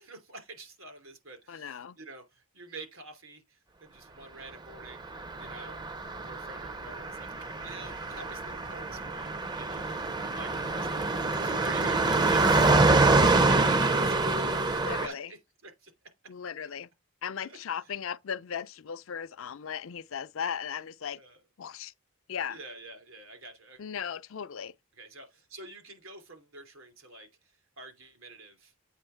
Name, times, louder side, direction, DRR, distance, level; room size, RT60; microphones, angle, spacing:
voice 1, 0.0-5.1 5.4-5.8 6.2-10.0 10.3-15.9 17.4-17.9 21.2-21.4 22.5-23.8 25.0-28.7, right 3 dB, 75° right, 2.8 m, -47 dB
voice 2, 1.5-2.0 14.9-15.3 16.3-16.9 17.2-21.2 21.6-21.9 22.3-22.6 23.8-24.7, left 7 dB, 70° left, 0.5 m, -37 dB
Car passing by, 5.1-15.1, right 3 dB, 20° right, 0.5 m, -26 dB
8.1 x 3.1 x 5.6 m
head